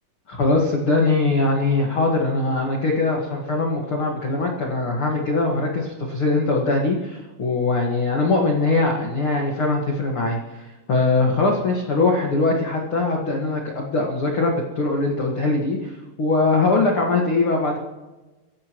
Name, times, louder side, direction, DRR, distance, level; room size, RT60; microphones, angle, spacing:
voice 1, 0.3-17.8, left 3 dB, 60° left, -1 dB, 1.3 m, -21 dB
25.5 x 15.5 x 3.1 m, 1.1 s
omnidirectional pair, 5.3 m